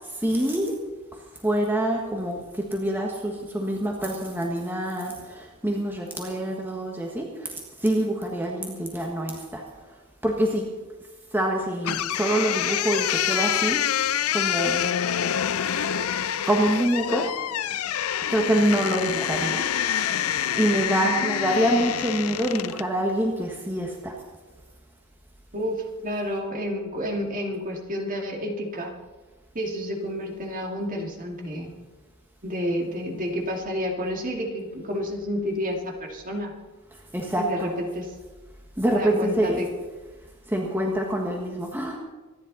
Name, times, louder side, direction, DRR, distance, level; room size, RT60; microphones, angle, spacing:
voice 1, 0.1-0.8 1.4-9.6 10.2-10.6 11.3-13.8 14.3-14.9 16.4-17.3 18.3-19.6 20.5-24.1 37.1-37.7 38.8-39.7 40.5-42.0, right 1 dB, 10° right, 0 dB, 1.5 m, -25 dB
sound 1, 11.8-22.9, left 10 dB, 70° left, 0.5 m, -26 dB
voice 2, 20.8-21.6 25.5-28.9 29.5-31.7 32.4-36.6 37.4-38.1 38.9-39.7, equal, 40° right, 1 dB, 2.3 m, -30 dB
25.0 x 10.5 x 4.0 m, 1.3 s
head